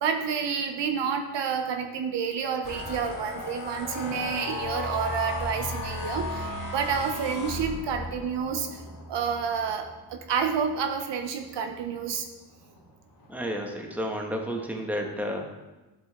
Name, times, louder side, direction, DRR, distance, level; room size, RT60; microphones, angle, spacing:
voice 1, 0.0-8.7 9.1-12.2, right 6 dB, 75° right, 5 dB, 0.8 m, -29 dB
sound 1, 2.6-12.0 12.5-12.8 13.1-13.6, left 2 dB, 50° left, 1.8 m, -36 dB
voice 2, 13.3-15.5, equal, 5° right, 1 dB, 1.6 m, -31 dB
12.0 x 4.5 x 3.7 m, 1.1 s
supercardioid pair, 50°, 42 cm